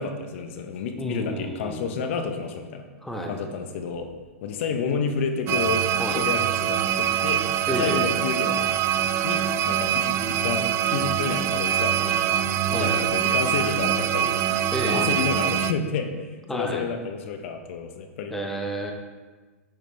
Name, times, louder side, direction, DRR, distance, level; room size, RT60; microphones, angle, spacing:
voice 1, 0.0-2.9 3.3-4.1 4.4-5.8 6.1-7.4 7.7-8.7 9.2-12.4 12.7-14.4 14.8-16.3 16.5-18.4, left 5 dB, 60° left, 6 dB, 1.0 m, -30 dB
voice 2, 1.0-1.9 3.0-3.4 6.0-6.2 7.7-8.0 12.7-13.0 14.7-15.1 16.5-16.9 18.3-18.9, equal, 5° left, 1 dB, 1.0 m, -30 dB
sound 1, 5.5-15.7, right 10 dB, 35° right, 0.4 m, -24 dB
9.1 x 7.3 x 3.4 m, 1.3 s
hypercardioid pair, 125°, 8 cm